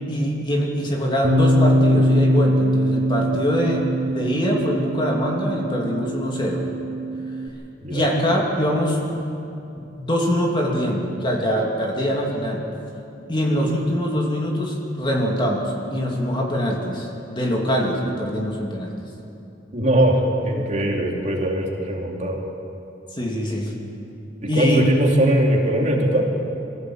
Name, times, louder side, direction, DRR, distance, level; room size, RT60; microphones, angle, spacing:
voice 1, 0.1-6.6 7.9-9.3 9.8-12.6 13.3-18.9 20.8-20.9 23.1-23.7 24.5-24.8, equal, 25° left, -1 dB, 2.7 m, -23 dB
Bass guitar, 1.2-7.5, equal, 75° right, 3.2 m, -21 dB
voice 2, 19.7-22.4 24.4-26.2, right 1 dB, 40° right, -1 dB, 2.8 m, -20 dB
23.0 x 15.5 x 7.9 m, 2.7 s
head